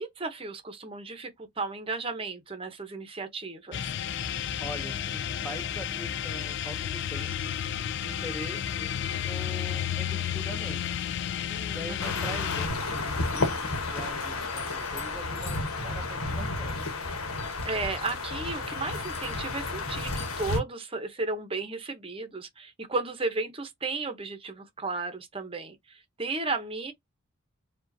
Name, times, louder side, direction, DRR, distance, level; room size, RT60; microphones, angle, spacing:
voice 1, 0.0-3.9 11.5-12.3 17.6-26.9, right 3 dB, 25° right, 0.8 m, -34 dB
sound 1, 3.7-12.7, left 9 dB, 55° left, 0.3 m, -32 dB
voice 2, 4.6-7.5 8.0-8.9 9.2-10.8 11.7-14.4 14.7-16.8, equal, 5° left, 0.7 m, -42 dB
sound 2, 12.0-20.6, left 3 dB, 85° left, 1.2 m, -32 dB
4.9 x 2.4 x 2.6 m
head